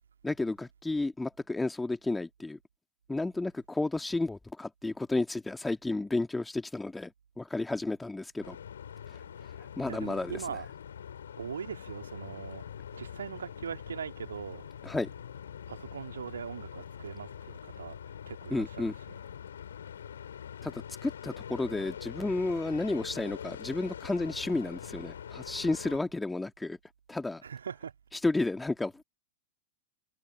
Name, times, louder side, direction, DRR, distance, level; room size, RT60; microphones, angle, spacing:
voice 1, 0.2-2.6 3.1-7.1 7.4-8.6 9.1-9.2 9.8-10.4 14.8-15.1 18.5-18.9 20.6-26.8 27.1-27.4 28.2-29.0, left 2 dB, 5° left, 2.1 m, -32 dB
sound 1, 8.4-26.0, left 8 dB, 65° left, 4.2 m, -44 dB
voice 2, 9.9-10.7 11.4-12.7 12.9-14.7 15.7-18.0 18.3-18.9 27.4-27.9, right 7 dB, 70° right, 2.8 m, -40 dB
figure-of-eight pair, 90°, 0 cm